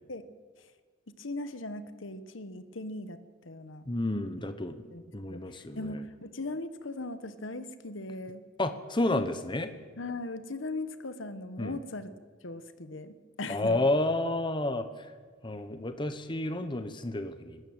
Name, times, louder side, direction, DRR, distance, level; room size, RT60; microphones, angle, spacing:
voice 1, 1.1-3.9 4.9-5.0 5.3-8.4 10.0-12.1 12.4-13.8, left 2 dB, 75° left, 12 dB, 1.3 m, -39 dB
voice 2, 3.9-6.0 8.6-9.7 11.6-11.8 13.5-14.8 15.4-17.6, left 2 dB, 25° left, 9 dB, 1.0 m, -30 dB
22.5 x 13.0 x 8.8 m, 1.5 s
head